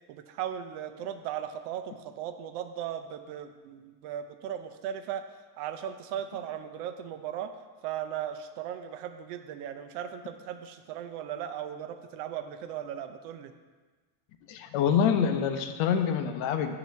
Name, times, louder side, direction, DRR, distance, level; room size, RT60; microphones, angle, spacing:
voice 1, 0.1-5.2 5.6-7.5 7.8-13.5, right 10 dB, 75° right, 7 dB, 0.7 m, -37 dB
voice 2, 14.5-16.8, left 7 dB, 55° left, 7 dB, 0.6 m, -26 dB
7.2 x 2.9 x 5.7 m, 1.4 s
cardioid pair, 150°, 47 cm